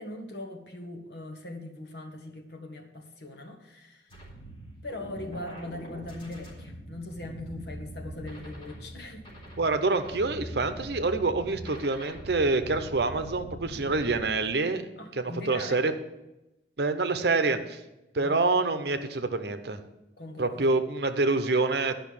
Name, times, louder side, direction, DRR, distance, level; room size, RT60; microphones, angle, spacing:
voice 1, 0.0-4.1 4.8-9.3 15.0-15.8 18.2-18.4 20.2-20.7, left 1 dB, 70° left, 4 dB, 1.4 m, -40 dB
sound 1, 4.1-14.3, right 1 dB, 30° left, 3.7 m, -43 dB
voice 2, 9.6-14.8 15.2-15.9 16.8-17.8 18.1-19.8 20.4-22.0, right 3 dB, 70° right, 9 dB, 0.8 m, -26 dB
10.5 x 5.7 x 7.2 m, 0.96 s
head